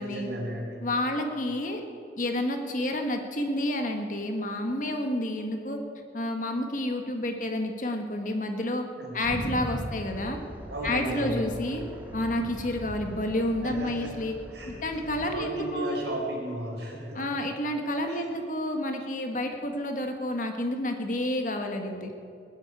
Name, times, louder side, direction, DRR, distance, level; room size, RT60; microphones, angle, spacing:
voice 1, 0.0-0.9 9.0-9.2 10.7-11.5 13.6-14.2 14.5-14.7 15.3-17.3 18.1-18.2, right 1 dB, 80° right, -1 dB, 4.5 m, -34 dB
voice 2, 0.8-1.8 2.2-5.8 6.1-8.8 9.1-10.4 10.8-11.8 12.1-14.3 14.7-16.1 17.1-22.1, left 1 dB, 45° left, 4 dB, 1.5 m, -30 dB
sound 1, 9.2-15.5, equal, 10° right, 1.6 m, -40 dB
19.0 x 8.2 x 9.0 m, 2.4 s
head